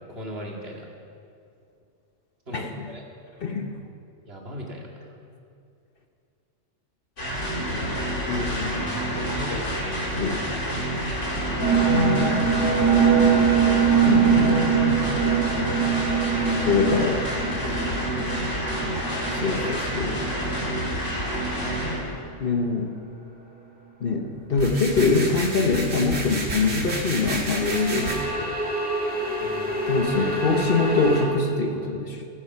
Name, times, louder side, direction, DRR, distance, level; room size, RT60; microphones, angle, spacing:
voice 1, 0.1-0.8 2.5-3.0 4.3-4.9 8.1-8.7 9.3-10.3 16.3-16.7 19.4-19.7 29.4-29.7, equal, 50° right, -1 dB, 2.4 m, -38 dB
voice 2, 2.5-2.9 3.4-3.8 8.3-8.9 10.2-10.4 11.9-12.4 14.0-15.2 16.7-17.2 19.3-20.2 22.4-22.9 24.0-28.5 29.9-32.3, left 4 dB, 50° left, 4 dB, 1.2 m, -24 dB
sound 1, 7.2-22.0, equal, 70° left, 3.6 m, -28 dB
sound 2, 11.6-21.3 21.6-21.7 27.6-31.3, right 6 dB, 5° right, 2.2 m, -24 dB
sound 3, 24.5-28.2, right 2 dB, 75° right, 2.4 m, -31 dB
15.0 x 13.5 x 5.9 m, 2.5 s
omnidirectional pair, 1.3 m